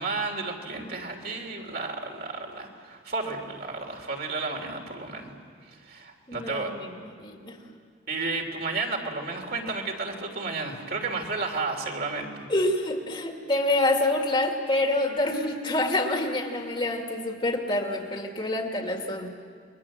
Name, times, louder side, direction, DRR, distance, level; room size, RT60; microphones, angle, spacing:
voice 1, 0.0-5.3 5.7-6.7 8.1-12.5, right 3 dB, 55° right, 2 dB, 3.3 m, -32 dB
voice 2, 6.3-7.6 12.5-19.3, left 1 dB, 25° left, 2 dB, 2.3 m, -27 dB
29.5 x 22.5 x 7.5 m, 2.2 s
head